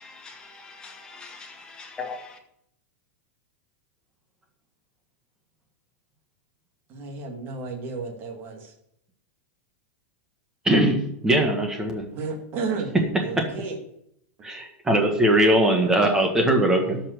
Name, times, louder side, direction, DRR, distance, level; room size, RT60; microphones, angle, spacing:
voice 1, 0.0-2.4, left 4 dB, 10° left, 1.8 m, -40 dB
voice 2, 6.9-8.7 12.1-12.9 13.2-13.8, right 4 dB, 30° right, 2.4 m, -32 dB
voice 3, 10.7-12.0 13.4-13.5 14.4-17.0, right 1 dB, 5° right, 1.7 m, -21 dB
13.0 x 5.8 x 6.7 m
supercardioid pair, 170°, 8 cm